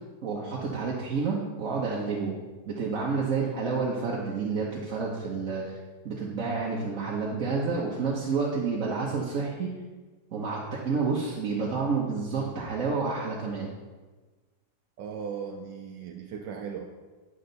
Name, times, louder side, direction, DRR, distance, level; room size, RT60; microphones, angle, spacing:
voice 1, 0.2-2.3 2.7-5.8 6.0-9.7 10.3-13.7, right 4 dB, 50° right, -4 dB, 1.3 m, -29 dB
voice 2, 15.0-16.9, right 6 dB, 80° right, 3 dB, 1.3 m, -37 dB
11.0 x 6.6 x 4.0 m, 1.3 s
omnidirectional pair, 2.0 m